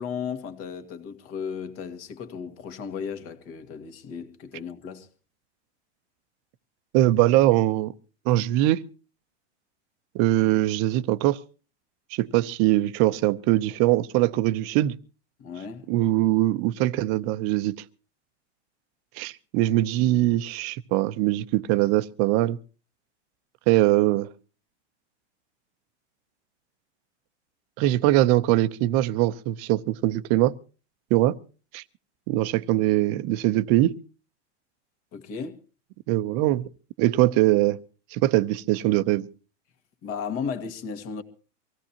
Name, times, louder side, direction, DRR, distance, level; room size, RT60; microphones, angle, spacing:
voice 1, 0.0-5.1 15.4-15.9 35.1-35.6 40.0-41.2, left 6 dB, 40° left, 1.9 m, -35 dB
voice 2, 6.9-7.9 8.3-8.8 10.1-11.4 12.1-14.9 15.9-17.8 19.2-22.6 23.7-24.3 27.8-30.5 31.1-31.4 31.7-31.8 32.3-33.9 36.1-36.6 37.0-37.8 38.1-39.3, right 16 dB, 40° right, 0.8 m, -22 dB
24.5 x 16.5 x 2.9 m
supercardioid pair, 140°, 35 cm